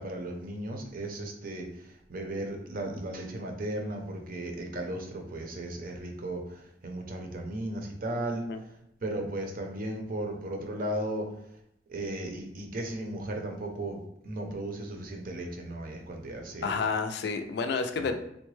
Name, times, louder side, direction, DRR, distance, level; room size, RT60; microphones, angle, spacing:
voice 1, 0.0-8.7 9.0-11.4 11.9-16.8 18.0-18.1, right 1 dB, 55° right, 2 dB, 0.6 m, -36 dB
voice 2, 16.6-18.1, left 4 dB, 65° left, 7 dB, 0.3 m, -30 dB
3.8 x 2.1 x 3.1 m, 0.77 s
head